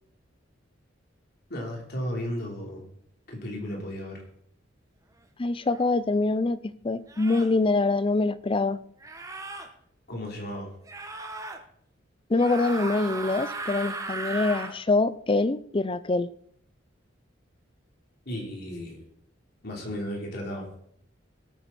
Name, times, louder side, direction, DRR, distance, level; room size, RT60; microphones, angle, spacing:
voice 1, 1.5-2.9 3.3-4.2 10.1-10.7 18.3-19.0 19.6-20.7, equal, 55° left, 0 dB, 3.4 m, -34 dB
voice 2, 5.4-6.6 6.8-8.8 12.3-16.3, left 3 dB, 30° left, 16 dB, 0.5 m, -24 dB
sound 1, 5.7-5.9 7.1-7.6 9.0-9.7 10.9-11.6 12.3-14.8, right 3 dB, 15° right, 1.2 m, -36 dB
19.0 x 8.8 x 4.1 m, 0.66 s
head